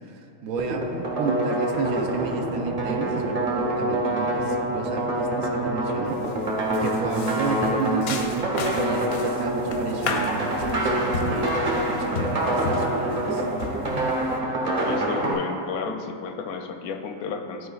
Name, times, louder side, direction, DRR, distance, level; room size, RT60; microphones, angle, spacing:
voice 1, 0.4-0.9 1.2-6.2 6.7-11.5 11.9-13.4, right 4 dB, 80° right, 3 dB, 1.0 m, -32 dB
sound 1, 0.6-15.3, right 1 dB, 30° right, 0.9 m, -26 dB
sound 2, 6.1-6.4 6.7-14.4, left 4 dB, 60° left, 0.7 m, -33 dB
voice 2, 14.8-17.7, left 5 dB, 85° left, 5 dB, 1.1 m, -32 dB
12.0 x 4.5 x 2.3 m, 2.6 s
omnidirectional pair, 1.5 m